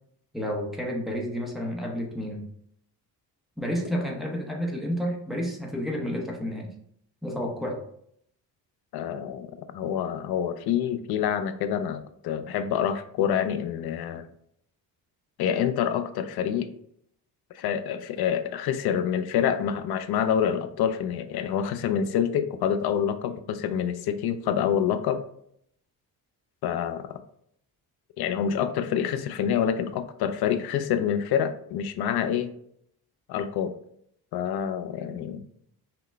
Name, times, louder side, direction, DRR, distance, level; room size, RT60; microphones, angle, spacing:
voice 1, 0.3-2.4 3.6-6.7 7.2-7.8, equal, ahead, -2 dB, 0.8 m, -30 dB
voice 2, 8.9-14.3 15.4-16.7 17.5-25.2 26.6-27.2 28.2-32.5 33.3-33.7 34.3-35.4, left 8 dB, 80° left, 10 dB, 0.5 m, -27 dB
5.8 x 2.2 x 3.2 m, 0.70 s
cardioid pair, 140°, 38 cm